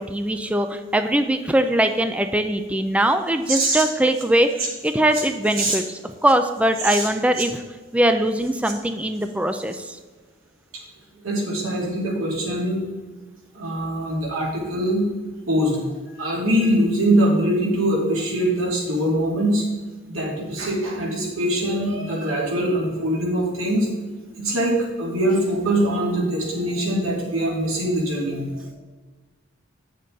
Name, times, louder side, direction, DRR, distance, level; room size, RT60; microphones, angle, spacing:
voice 1, 0.0-4.5 4.8-7.6 7.9-10.0, right 1 dB, 5° right, 7 dB, 0.3 m, -21 dB
voice 2, 3.5-3.8 5.6-5.8 6.8-7.1 11.2-12.8 13.5-15.0 15.5-15.8 16.2-19.6 20.1-23.9 24.4-28.7, right 1 dB, 90° right, -3 dB, 2.8 m, -23 dB
8.7 x 6.5 x 4.0 m, 1.3 s
head